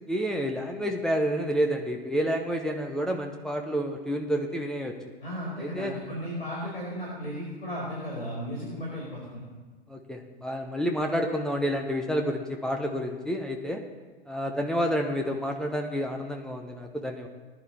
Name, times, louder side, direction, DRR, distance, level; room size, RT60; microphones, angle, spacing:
voice 1, 0.1-4.9 5.6-5.9 9.9-13.8 14.3-17.3, equal, ahead, 1 dB, 0.8 m, -29 dB
voice 2, 5.2-9.4, equal, 70° left, -5 dB, 5.1 m, -35 dB
19.5 x 11.0 x 3.3 m, 1.3 s
figure-of-eight pair, 110°, 30 cm